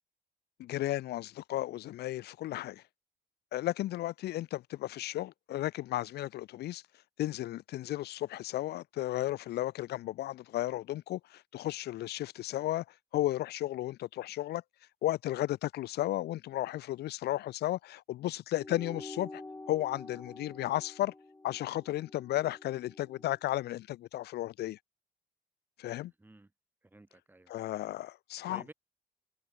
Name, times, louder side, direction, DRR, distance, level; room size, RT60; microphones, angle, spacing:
voice 1, 0.6-2.8 3.5-6.8 7.2-12.8 13.1-14.6 15.0-19.4 19.7-21.1 21.4-24.8 25.8-26.1 27.5-28.6, left 15 dB, 75° left, 1.3 m, -34 dB
sound 1, 18.6-23.4, left 2 dB, 15° left, 7.4 m, -48 dB
voice 2, 26.0-26.5 26.8-27.5 28.5-28.7, right 2 dB, 10° right, 4.3 m, -53 dB
cardioid pair, 120°, 17 cm